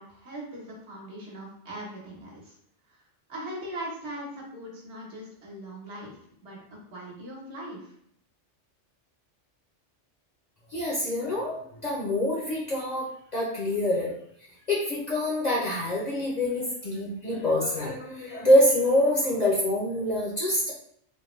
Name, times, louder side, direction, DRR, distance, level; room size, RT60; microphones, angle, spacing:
voice 1, 0.0-2.5 2.9-3.0 3.3-6.6 6.9-7.9, right 1 dB, 65° right, -3 dB, 1.3 m, -40 dB
voice 2, 10.7-14.1 14.7-20.7, left 1 dB, 45° left, -4 dB, 0.6 m, -25 dB
3.5 x 2.2 x 3.1 m, 0.68 s
omnidirectional pair, 1.2 m